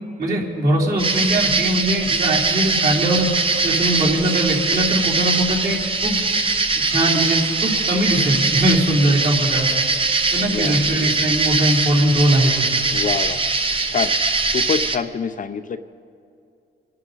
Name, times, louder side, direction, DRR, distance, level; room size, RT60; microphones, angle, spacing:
voice 1, 0.2-3.3 3.6-6.2 6.9-9.7 10.3-12.8, right 1 dB, 50° right, -3 dB, 3.5 m, -20 dB
sound 1, 1.0-15.0, right 3 dB, 25° right, 1.0 m, -21 dB
voice 2, 10.5-10.8 12.9-13.4 13.9-14.1 14.5-15.8, left 6 dB, 40° left, 9 dB, 0.7 m, -25 dB
27.0 x 11.5 x 4.0 m, 2.5 s
cardioid pair, 90°, 20 cm